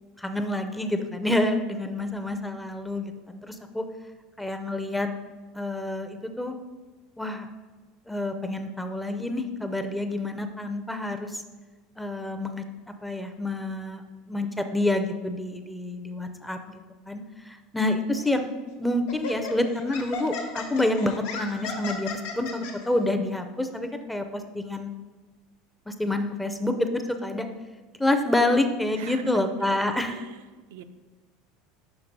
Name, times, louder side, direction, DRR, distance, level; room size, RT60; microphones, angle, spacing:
voice 1, 0.2-3.8 4.4-5.1 5.5-6.6 7.2-7.5 8.1-11.4 12.0-12.6 13.0-16.8 17.1-18.5 18.8-24.9 25.9-27.5 28.0-30.1, left 1 dB, 5° left, 6 dB, 0.5 m, -28 dB
Laughter, 18.2-18.4 19.1-22.7, left 5 dB, 80° left, 1.2 m, -35 dB
voice 2, 28.9-29.4 29.7-29.8 30.1-30.8, right 10 dB, 85° right, 8 dB, 0.5 m, -42 dB
5.9 x 4.7 x 5.2 m, 1.3 s
supercardioid pair, 135°, 0 cm